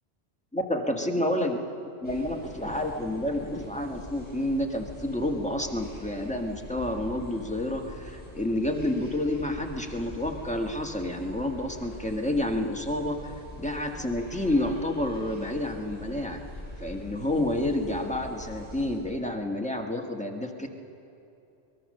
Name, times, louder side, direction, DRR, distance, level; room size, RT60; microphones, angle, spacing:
voice 1, 0.5-1.6 2.0-16.4 16.8-20.7, left 1 dB, 5° left, 2 dB, 1.5 m, -29 dB
sound 1, 2.0-19.0, left 1 dB, 25° left, 7.2 m, -44 dB
23.0 x 19.5 x 6.6 m, 2.8 s
omnidirectional pair, 1.2 m